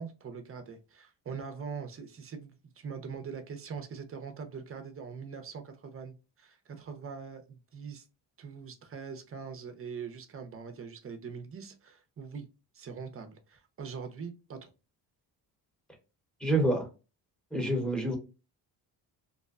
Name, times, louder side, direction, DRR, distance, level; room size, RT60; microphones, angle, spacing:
voice 1, 0.0-8.1 8.4-12.5 12.7-14.7, right 6 dB, 30° right, 0.6 m, -42 dB
voice 2, 16.4-16.9 17.5-18.2, right 1 dB, ahead, 1.0 m, -27 dB
2.6 x 2.1 x 2.4 m
supercardioid pair, 70°, 45 cm